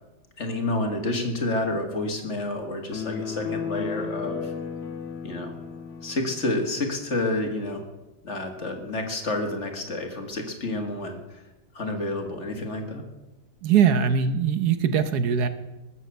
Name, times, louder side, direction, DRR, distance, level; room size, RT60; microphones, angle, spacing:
voice 1, 0.4-4.5 5.2-5.5 6.0-7.8 8.2-11.4 11.7-13.0, left 2 dB, 45° left, 4 dB, 2.1 m, -29 dB
sound 1, 2.9-6.5, left 6 dB, 70° left, 1.7 m, -34 dB
voice 2, 13.6-15.5, right 7 dB, 70° right, 10 dB, 1.4 m, -21 dB
20.0 x 7.8 x 6.8 m, 1.0 s
omnidirectional pair, 1.8 m